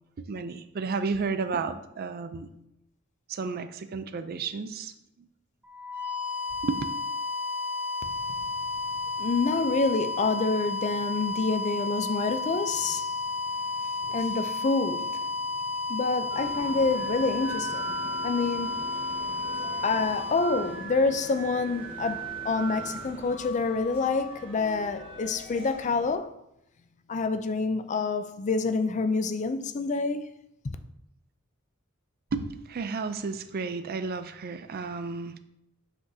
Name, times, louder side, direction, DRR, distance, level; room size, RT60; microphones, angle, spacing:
voice 1, 0.3-2.5 3.3-4.9 6.6-6.8 32.3-35.4, right 4 dB, 50° right, 0.4 m, -32 dB
sound 1, 5.6-21.4, left 3 dB, 10° right, 0.8 m, -32 dB
voice 2, 9.2-13.1 14.1-15.3 15.9-17.9 18.2-18.8 19.8-26.3 27.1-30.3 30.6-30.8, left 4 dB, 35° left, 0.4 m, -27 dB
sound 2, 16.3-26.1, right 3 dB, 25° right, 1.4 m, -40 dB
7.9 x 6.0 x 2.7 m
head